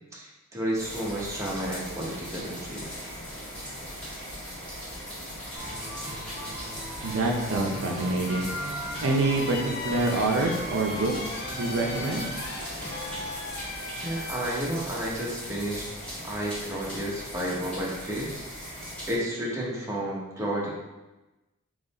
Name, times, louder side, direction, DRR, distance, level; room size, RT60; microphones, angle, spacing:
voice 1, 0.1-2.8 14.0-15.9 16.2-18.4 19.1-20.7, right 1 dB, 15° right, -5 dB, 1.0 m, -31 dB
sound 1, 0.7-19.2, equal, 5° left, 1.4 m, -39 dB
sound 2, 5.6-13.3, equal, 30° right, 1.3 m, -40 dB
voice 2, 7.0-8.5 9.0-9.6 9.8-11.1 11.6-12.2, right 2 dB, 65° right, 0 dB, 0.6 m, -26 dB
sound 3, 8.3-14.6, left 2 dB, 50° left, 0.5 m, -38 dB
3.8 x 3.1 x 4.1 m, 1.1 s
head